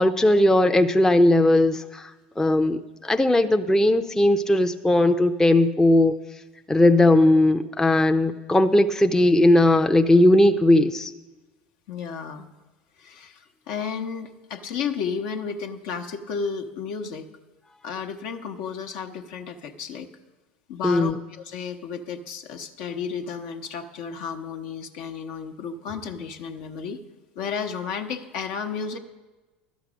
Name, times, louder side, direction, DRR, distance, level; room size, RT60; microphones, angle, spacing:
voice 1, 0.0-2.1 2.4-6.2 6.7-11.1 20.8-21.2, left 1 dB, 10° left, 5 dB, 0.6 m, -18 dB
voice 2, 11.9-12.5 13.0-17.3 17.8-20.1 20.7-27.0 27.3-29.0, left 6 dB, 65° left, 5 dB, 1.0 m, -33 dB
12.0 x 8.1 x 6.2 m, 1.2 s
hypercardioid pair, 85°, 5 cm